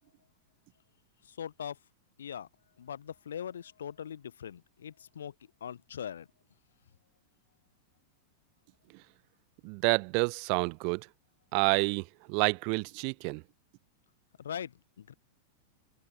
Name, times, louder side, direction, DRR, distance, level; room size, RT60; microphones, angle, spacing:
voice 1, 1.3-1.8 2.2-2.5 2.8-5.3 5.6-6.3 14.4-15.1, left 8 dB, 65° left, 1.0 m, -41 dB
voice 2, 9.6-11.1 11.5-13.4, right 40 dB or more, 45° right, 1.1 m, -29 dB
open air
figure-of-eight pair, 90°, 0 cm